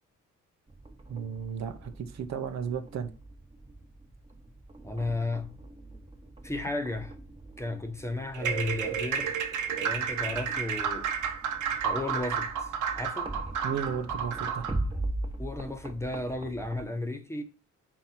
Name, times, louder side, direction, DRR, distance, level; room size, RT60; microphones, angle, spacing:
sound 1, 0.7-16.9, right 2 dB, 20° right, 1.3 m, -41 dB
voice 1, 1.1-3.1 13.6-14.7, right 7 dB, 65° right, 0.9 m, -34 dB
voice 2, 4.8-5.6 6.4-7.1 7.6-9.4 9.7-11.1 11.8-12.7 13.0-13.3 15.4-17.4, left 2 dB, 10° left, 1.1 m, -34 dB
sound 2, 8.3-14.8, right 7 dB, 80° right, 1.2 m, -31 dB
4.7 x 4.5 x 5.7 m
cardioid pair, 90°, 30 cm